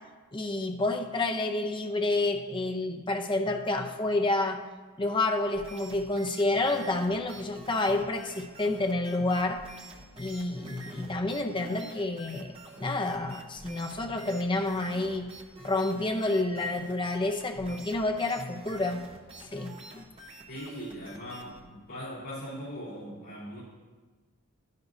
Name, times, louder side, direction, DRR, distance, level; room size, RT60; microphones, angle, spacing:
voice 1, 0.3-4.6 5.0-9.7 10.2-15.3 15.6-19.0 19.4-19.8, left 2 dB, 20° left, 4 dB, 0.6 m, -29 dB
sound 1, 5.5-21.6, right 2 dB, 25° right, 0.9 m, -48 dB
voice 2, 20.5-23.6, equal, 70° left, -11 dB, 3.4 m, -40 dB
11.5 x 10.5 x 2.7 m, 1.4 s
head